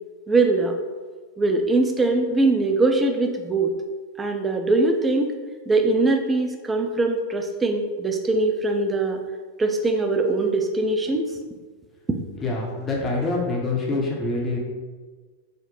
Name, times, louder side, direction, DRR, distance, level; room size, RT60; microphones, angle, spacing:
voice 1, 0.3-0.7 1.4-3.7 4.2-5.3 5.7-9.2 9.6-11.2 12.1-12.2, right 2 dB, 15° right, 4 dB, 0.4 m, -22 dB
voice 2, 12.4-14.6, left 2 dB, 25° left, -1 dB, 0.7 m, -25 dB
4.2 x 2.0 x 3.2 m, 1.4 s
figure-of-eight pair, 90°, 0 cm